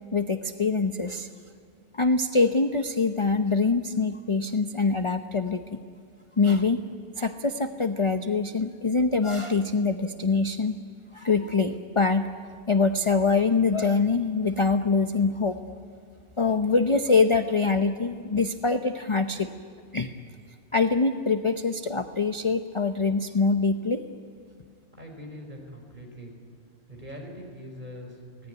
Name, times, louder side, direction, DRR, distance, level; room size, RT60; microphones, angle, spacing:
voice 1, 0.1-1.3 1.9-5.8 6.4-6.9 7.2-10.8 11.1-12.3 12.7-15.6 16.4-19.5 19.9-20.1 20.7-24.0, left 4 dB, 30° left, 7 dB, 0.7 m, -24 dB
voice 2, 24.9-26.3 26.9-28.5, equal, 35° right, 1 dB, 5.3 m, -42 dB
24.5 x 18.0 x 9.5 m, 2.1 s
omnidirectional pair, 1.3 m